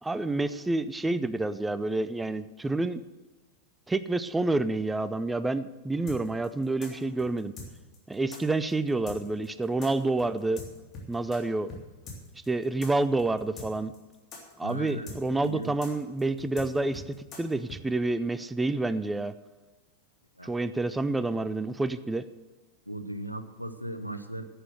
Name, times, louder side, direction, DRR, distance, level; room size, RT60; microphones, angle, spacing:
voice 1, 0.0-3.0 3.9-7.5 8.1-10.6 11.1-11.7 12.5-13.9 14.6-19.3 20.4-22.3, right 2 dB, 10° right, 14 dB, 0.5 m, -28 dB
sound 1, 6.1-11.4 11.7-11.8 12.1-17.8, left 3 dB, 30° left, 3.1 m, -43 dB
voice 2, 14.6-15.1 15.4-15.7 20.4-20.5 22.9-24.4, right 1 dB, 90° right, 10 dB, 0.8 m, -37 dB
11.0 x 8.4 x 7.7 m, 1.3 s
figure-of-eight pair, 90°, 0 cm